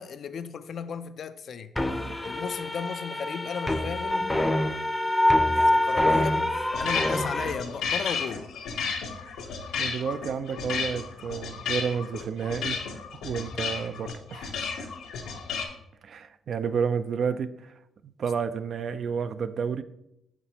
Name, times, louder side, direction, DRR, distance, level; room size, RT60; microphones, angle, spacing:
voice 1, 0.0-1.7 2.2-4.3 5.5-8.5, left 6 dB, 60° left, 0.4 m, -35 dB
sound 1, 1.8-7.5, left 1 dB, 10° left, 0.6 m, -25 dB
sound 2, 6.7-15.7, left 5 dB, 85° left, 0.8 m, -33 dB
voice 2, 9.8-12.8 13.2-14.6 16.0-17.7 18.0-19.8, right 6 dB, 55° right, 0.3 m, -30 dB
5.8 x 5.8 x 2.8 m
cardioid pair, 90°, 0 cm